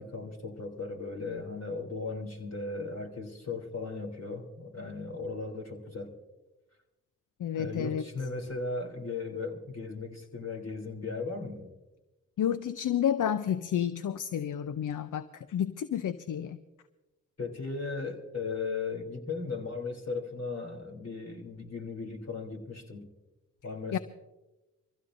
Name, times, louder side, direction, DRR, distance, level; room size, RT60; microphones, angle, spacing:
voice 1, 0.0-6.1 7.5-11.7 17.4-23.1 23.6-24.0, left 4 dB, 50° left, 2 dB, 3.3 m, -37 dB
voice 2, 7.4-8.0 12.4-16.6 23.9-24.0, left 9 dB, 70° left, 13 dB, 0.6 m, -30 dB
24.5 x 15.5 x 2.6 m, 1.1 s
supercardioid pair, 45°, 33 cm